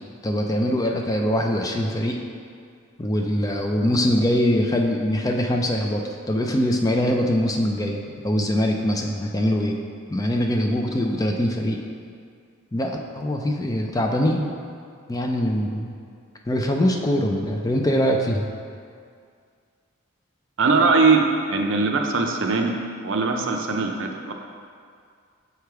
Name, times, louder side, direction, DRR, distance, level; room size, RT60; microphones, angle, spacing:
voice 1, 0.2-2.2 3.0-9.8 10.1-11.8 12.7-14.5 15.1-15.9 16.5-18.5, equal, 15° left, 2 dB, 0.3 m, -23 dB
voice 2, 20.6-21.2 21.5-22.7 23.0-24.3, right 4 dB, 70° right, 3 dB, 0.5 m, -20 dB
6.9 x 3.3 x 4.6 m, 2.2 s
head